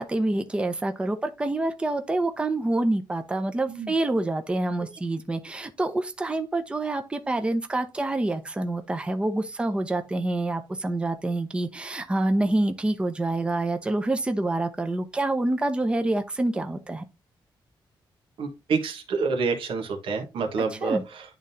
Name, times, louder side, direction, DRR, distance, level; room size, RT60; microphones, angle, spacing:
voice 1, 0.0-17.0 20.8-21.0, right 2 dB, 10° right, 0.7 m, -27 dB
voice 2, 18.4-21.2, right 4 dB, 90° right, 1.4 m, -28 dB
11.0 x 3.7 x 2.7 m
wide cardioid pair, 170°, 9 cm